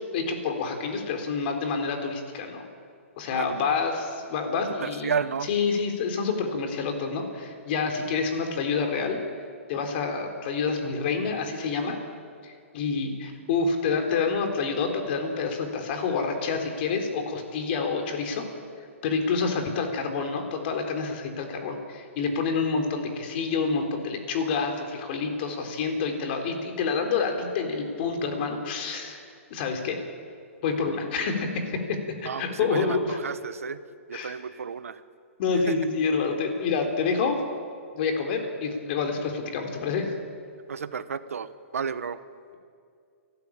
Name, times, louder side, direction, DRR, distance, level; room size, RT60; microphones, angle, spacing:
voice 1, 0.1-2.7 3.2-5.1 5.5-9.2 9.7-12.0 12.4-18.4 19.0-29.2 29.5-30.0 30.6-33.2 34.1-34.3 35.4-37.4 37.9-40.1, left 5 dB, 45° left, 4 dB, 3.9 m, -28 dB
voice 2, 3.3-3.7 4.4-5.5 32.2-33.8 34.1-35.0 35.7-35.8 40.7-42.2, right 6 dB, 80° right, 13 dB, 1.2 m, -32 dB
29.0 x 13.0 x 8.8 m, 2.3 s
hypercardioid pair, 135°, 8 cm